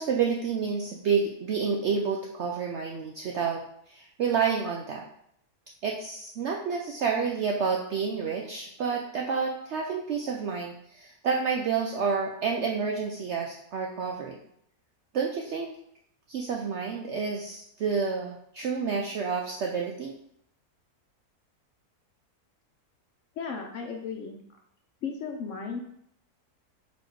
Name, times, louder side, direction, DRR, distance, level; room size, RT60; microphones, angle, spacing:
voice 1, 0.0-3.6 3.9-5.0 5.8-14.4 15.1-15.7 16.3-20.1, right 5 dB, 75° right, 0 dB, 0.6 m, -29 dB
voice 2, 23.4-24.4 25.0-25.8, left 5 dB, 65° left, 2 dB, 0.8 m, -35 dB
4.1 x 2.8 x 4.5 m, 0.72 s
omnidirectional pair, 1.7 m